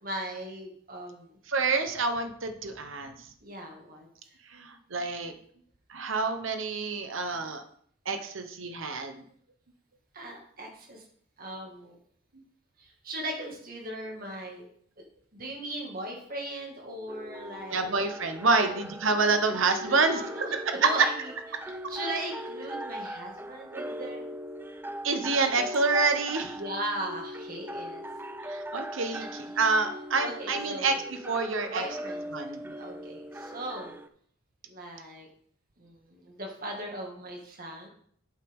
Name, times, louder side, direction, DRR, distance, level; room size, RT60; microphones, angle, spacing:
voice 1, 0.0-1.4 3.4-4.4 10.1-11.0 11.4-12.0 12.8-14.7 15.3-17.9 18.6-18.8 19.8-21.3 21.6-24.4 26.4-28.0 29.2-29.6 30.2-30.9 31.6-32.3 32.6-34.0 34.7-35.3 35.8-37.9, right 1 dB, 45° right, 0 dB, 2.0 m, -38 dB
voice 2, 1.5-3.1 4.5-5.3 5.9-7.6 8.1-9.1 17.7-20.2 20.5-20.7 25.0-26.6 28.5-30.9 31.3-31.8 32.3-32.6, right 3 dB, 65° right, 7 dB, 1.0 m, -27 dB
sound 1, 17.1-34.1, equal, 10° right, 0.3 m, -40 dB
9.1 x 8.2 x 3.6 m, 0.62 s
head